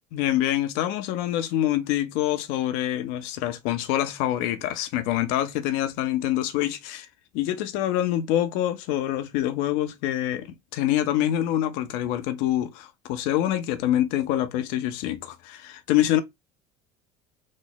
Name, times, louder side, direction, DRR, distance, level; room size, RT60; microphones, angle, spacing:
voice 1, 0.1-7.1 7.3-16.2, left 12 dB, 70° left, 0.5 m, -26 dB
3.1 x 2.0 x 3.8 m
supercardioid pair, 95°, 16 cm